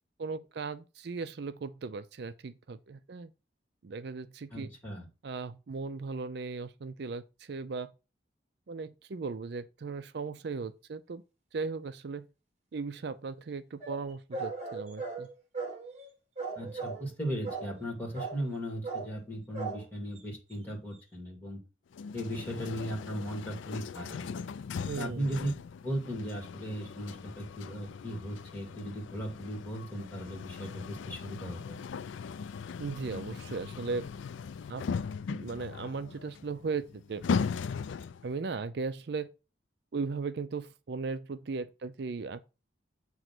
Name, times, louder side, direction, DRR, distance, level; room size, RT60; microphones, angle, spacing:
voice 1, 0.2-3.3 3.8-4.7 5.2-7.9 8.7-11.2 11.5-12.3 12.7-15.3 24.9-25.3 32.8-34.1 34.7-34.9 35.3-37.2 38.2-39.3 39.9-42.5, right 4 dB, 60° right, 0.4 m, -37 dB
voice 2, 4.5-5.1 16.6-21.6 22.1-24.2 25.0-25.5 25.8-31.8, equal, 10° left, 2.2 m, -37 dB
sound 1, 13.8-16.1 16.4-17.1 17.4-17.9 18.1-18.6 18.8-19.1 19.5-19.8 20.1-20.2 20.5-20.6, right 4 dB, 35° right, 1.8 m, -38 dB
sound 2, 21.9-38.3, left 5 dB, 80° left, 0.4 m, -39 dB
7.8 x 3.0 x 6.0 m
head